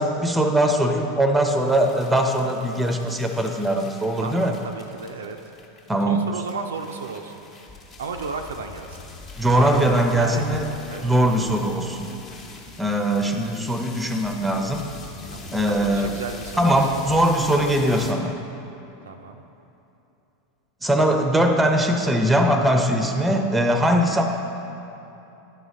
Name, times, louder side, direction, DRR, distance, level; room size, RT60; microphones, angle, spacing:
voice 1, 0.0-4.5 5.9-6.3 9.4-10.7 11.0-12.1 12.8-14.8 15.5-16.1 16.6-18.3 20.8-24.2, right 1 dB, 5° right, 4 dB, 0.7 m, -21 dB
sound 1, 1.5-18.1, left 3 dB, 30° left, 1.0 m, -43 dB
voice 2, 4.2-5.4 6.1-7.4 8.0-9.0 9.5-9.8 10.2-11.0 15.3-16.8 19.1-19.4, right 5 dB, 70° right, 5 dB, 0.4 m, -34 dB
10.0 x 4.1 x 5.1 m, 2.9 s
figure-of-eight pair, 85°, 0 cm